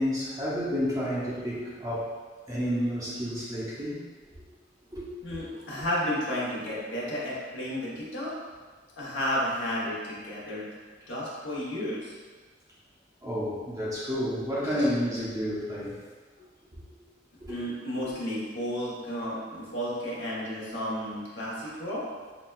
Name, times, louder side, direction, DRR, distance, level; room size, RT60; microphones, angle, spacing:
voice 1, 0.0-2.1 2.5-4.0 4.9-5.4 13.2-16.0 17.4-17.6, equal, 20° right, -8 dB, 0.6 m, -30 dB
voice 2, 5.2-8.3 9.0-10.7 11.1-12.1 14.8-14.9 17.5-22.1, equal, 75° left, -6 dB, 1.0 m, -32 dB
5.6 x 2.2 x 2.3 m, 1.4 s
head